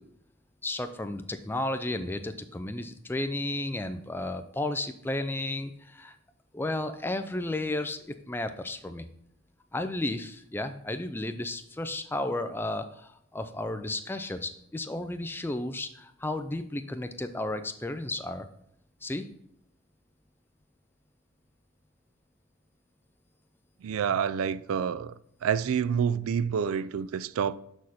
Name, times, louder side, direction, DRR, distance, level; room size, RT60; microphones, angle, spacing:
voice 1, 0.6-6.2 6.5-9.1 9.7-18.5 19.0-19.3, left 2 dB, 10° left, 0.4 m, -33 dB
voice 2, 23.8-25.1 25.4-27.6, right 7 dB, 80° right, 0.3 m, -28 dB
6.4 x 6.3 x 4.1 m
head